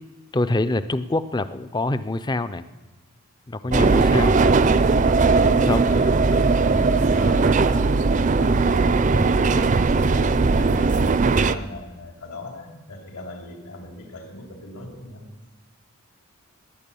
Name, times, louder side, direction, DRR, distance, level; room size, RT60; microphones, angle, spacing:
voice 1, 0.3-2.6 3.5-4.3 5.5-5.9, left 2 dB, 20° left, 12 dB, 0.5 m, -25 dB
voice 2, 3.6-4.5 5.5-15.3, left 2 dB, 70° left, 1 dB, 3.3 m, -38 dB
sound 1, 3.7-11.6, right 4 dB, 35° right, 0.5 m, -18 dB
20.0 x 9.5 x 7.0 m, 1.2 s
head